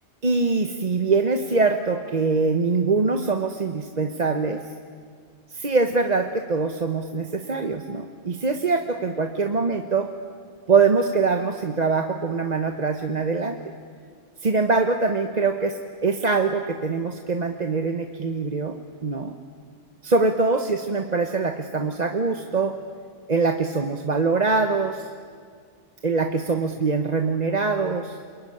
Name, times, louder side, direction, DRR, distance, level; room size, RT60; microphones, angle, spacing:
voice 1, 0.2-4.6 5.5-10.1 10.7-13.6 14.4-19.4 20.0-22.7 23.3-25.1 26.0-28.2, right 4 dB, 35° right, 6 dB, 1.1 m, -23 dB
27.5 x 22.0 x 9.9 m, 2.1 s
omnidirectional pair, 1.2 m